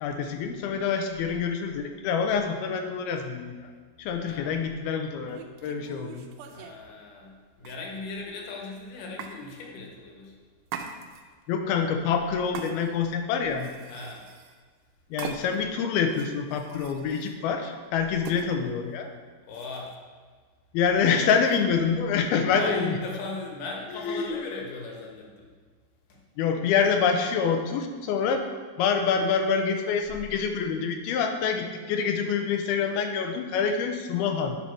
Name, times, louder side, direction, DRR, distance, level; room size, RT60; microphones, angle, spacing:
voice 1, 0.0-3.7 4.0-6.2 11.5-13.7 15.1-19.1 20.7-23.0 23.9-24.4 26.4-28.4 28.8-34.6, left 6 dB, 85° left, 5 dB, 2.5 m, -26 dB
voice 2, 4.2-4.6 6.5-10.3 13.9-14.3 19.5-19.9 22.5-25.5 26.1-26.2, left 3 dB, 65° left, 0 dB, 2.6 m, -37 dB
sound 1, 4.3-4.5 5.2-6.8 7.6-8.2 9.2-9.4 10.7-11.4 12.5-13.1 13.5-14.6 15.2-15.7 16.1-17.4 18.2-18.5 19.5-20.0, right 7 dB, 80° right, 2.3 m, -41 dB
9.5 x 5.7 x 4.6 m, 1.5 s
omnidirectional pair, 4.4 m